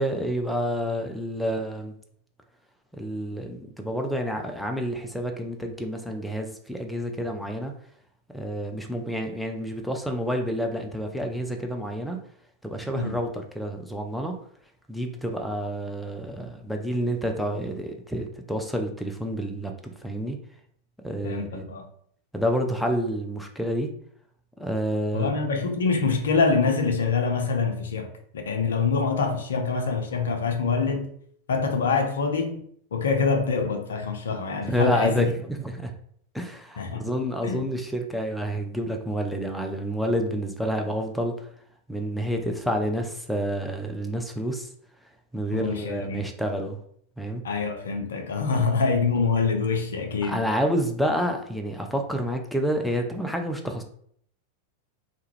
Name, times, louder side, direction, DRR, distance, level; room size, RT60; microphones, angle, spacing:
voice 1, 0.0-1.9 3.0-7.7 8.3-12.2 12.6-14.4 14.9-20.4 21.0-21.6 22.3-23.9 24.6-25.3 34.3-34.4 34.7-35.9 36.3-41.5 41.9-44.7 45.3-46.8 47.2-47.4 48.5-48.6 50.2-53.8, equal, ahead, 0.4 m, -29 dB
voice 2, 21.2-21.9 25.1-31.1 31.5-32.6 32.9-35.3 36.8-37.0 37.4-37.7 45.5-46.3 47.4-50.4, left 4 dB, 65° left, 0.4 m, -25 dB
2.3 x 2.0 x 3.0 m
figure-of-eight pair, 90°, 0 cm